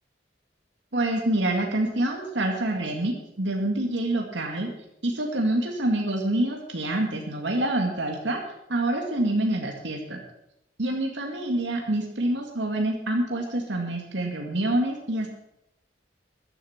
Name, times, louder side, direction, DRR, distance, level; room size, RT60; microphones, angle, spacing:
voice 1, 0.9-4.7 5.0-8.4 8.7-10.2 10.8-15.3, right 1 dB, 90° right, 1 dB, 2.1 m, -26 dB
13.5 x 11.0 x 5.9 m, 0.82 s
head